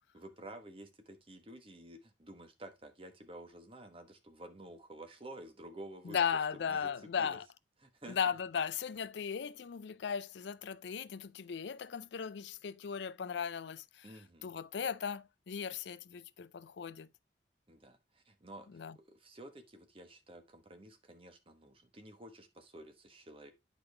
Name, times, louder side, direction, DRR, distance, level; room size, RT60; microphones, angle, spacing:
voice 1, 0.1-6.2 6.5-6.9 7.2-7.4 7.8-8.2 14.0-14.5 17.7-23.5, right 1 dB, 30° right, 1.1 m, -51 dB
voice 2, 6.0-7.4 8.1-14.1 14.4-17.1 18.7-19.0, left 7 dB, 70° left, 0.4 m, -37 dB
8.8 x 5.1 x 3.3 m
head